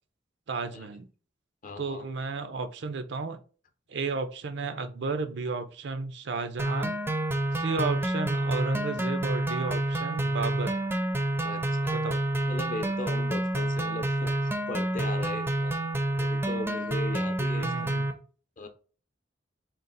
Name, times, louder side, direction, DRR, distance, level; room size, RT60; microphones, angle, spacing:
voice 1, 0.5-1.1 1.8-3.4 3.9-7.0 7.6-10.7 11.9-12.2 17.5-18.1, right 4 dB, 70° right, 10 dB, 0.5 m, -33 dB
voice 2, 1.6-2.1 7.7-7.8 11.4-12.0 12.5-15.7 16.2-18.0 18.6-18.7, left 3 dB, 45° left, 7 dB, 0.6 m, -38 dB
sound 1, 6.6-18.1, right 1 dB, 10° right, 0.5 m, -28 dB
3.9 x 2.4 x 3.9 m, 0.38 s
head